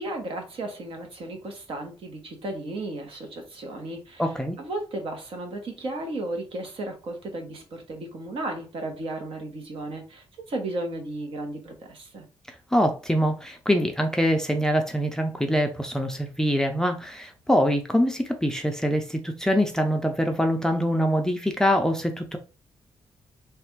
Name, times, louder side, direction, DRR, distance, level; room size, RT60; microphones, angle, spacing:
voice 1, 0.0-4.3 4.6-12.3, right 2 dB, 65° right, 1.1 m, -34 dB
voice 2, 4.2-4.6 12.7-22.4, equal, 5° left, 0.4 m, -24 dB
3.3 x 2.4 x 4.4 m
wide cardioid pair, 160°, 10 cm